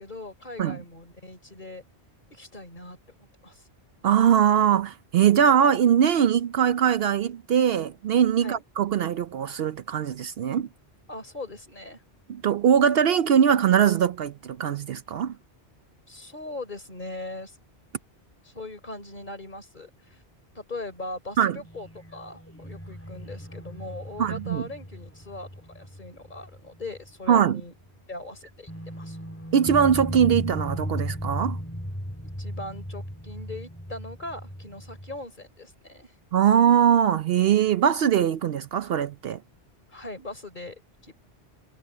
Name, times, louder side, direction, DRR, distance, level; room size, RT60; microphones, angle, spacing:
voice 1, 0.0-1.8 2.3-3.6 8.4-8.6 11.1-12.0 16.1-17.6 18.4-20.2 20.5-25.5 25.7-27.7 28.1-28.7 29.0-29.2 32.4-36.1 39.9-41.1, left 2 dB, 45° left, 3.9 m, -40 dB
voice 2, 4.0-10.7 12.3-15.4 21.4-21.6 24.2-24.6 27.3-27.6 29.5-31.6 36.3-39.4, right 8 dB, 65° right, 0.8 m, -21 dB
sound 1, 21.6-27.1 27.4-27.5 28.7-35.2, equal, 15° left, 3.8 m, -36 dB
omnidirectional pair, 1.1 m